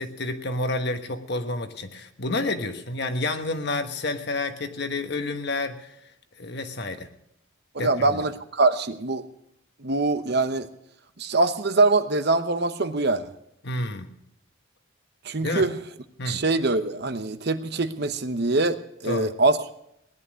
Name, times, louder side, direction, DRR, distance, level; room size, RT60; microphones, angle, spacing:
voice 1, 0.0-5.9 6.4-7.1 7.8-8.2 13.6-14.1 15.4-15.7 16.2-16.4 19.0-19.3, left 2 dB, 55° left, 7 dB, 1.3 m, -29 dB
voice 2, 7.7-9.2 9.8-10.7 11.2-13.3 15.2-15.8 16.3-19.7, right 3 dB, 55° right, 10 dB, 0.9 m, -23 dB
18.0 x 11.0 x 6.3 m, 0.77 s
head